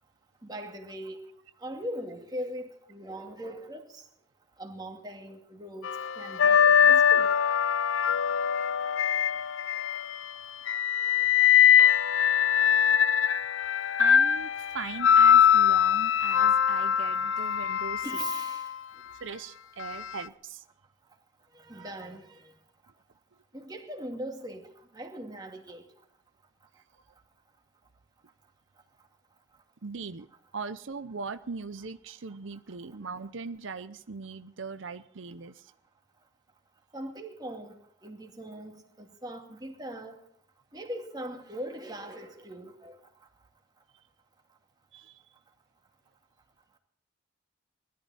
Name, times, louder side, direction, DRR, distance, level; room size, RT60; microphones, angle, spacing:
voice 1, 0.4-1.2 1.6-4.0 4.6-7.3 11.1-11.5 18.0-18.7 21.5-22.5 23.5-25.8 36.9-37.7 38.0-40.2 40.7-43.0, right 1 dB, 20° right, 2 dB, 2.4 m, -40 dB
sound 1, 5.8-10.2 10.7-18.7 19.8-20.0, left 8 dB, 85° left, 0.5 m, -22 dB
voice 2, 14.0-18.2 19.1-20.6 21.7-22.0 26.8-26.9 29.8-30.3 30.5-35.7 44.9-45.2, right 5 dB, 75° right, 12 dB, 0.7 m, -40 dB
20.5 x 13.5 x 4.2 m, 0.72 s
head